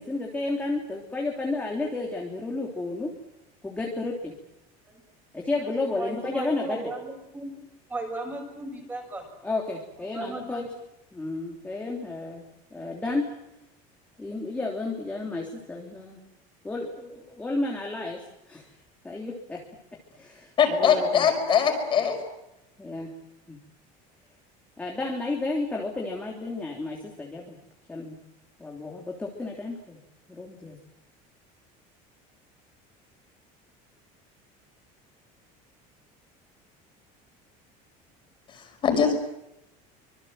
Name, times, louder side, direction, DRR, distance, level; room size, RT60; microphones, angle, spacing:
voice 1, 0.0-3.1 3.6-4.3 5.3-6.9 9.4-10.6 11.1-12.4 12.7-13.3 14.2-16.2 16.6-18.2 18.5-18.6 19.0-19.6 20.2-21.3 22.8-23.1 23.5-23.6 24.8-27.6 27.9-28.2 28.6-30.0 30.3-30.8, left 2 dB, 10° left, -1 dB, 3.3 m, -32 dB
voice 2, 5.6-7.5 7.9-9.2 10.1-10.7, right 2 dB, 10° right, 3 dB, 7.0 m, -36 dB
voice 3, 20.6-22.2 38.5-39.2, left 7 dB, 30° left, 5 dB, 5.4 m, -22 dB
26.5 x 26.0 x 7.8 m, 0.87 s
cardioid pair, 175°, 17 cm